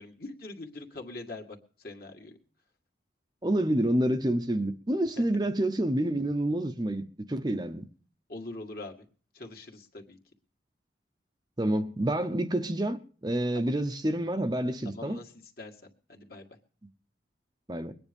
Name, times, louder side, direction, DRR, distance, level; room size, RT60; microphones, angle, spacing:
voice 1, 0.0-1.5 1.8-2.4 8.3-9.1 9.3-10.2 13.5-13.7 14.8-15.3 15.6-15.8 16.1-16.5, left 2 dB, 50° left, 2.0 m, -42 dB
voice 2, 3.4-7.8 11.6-15.2 17.7-17.9, right 1 dB, 20° right, 0.7 m, -28 dB
21.5 x 9.7 x 5.3 m
head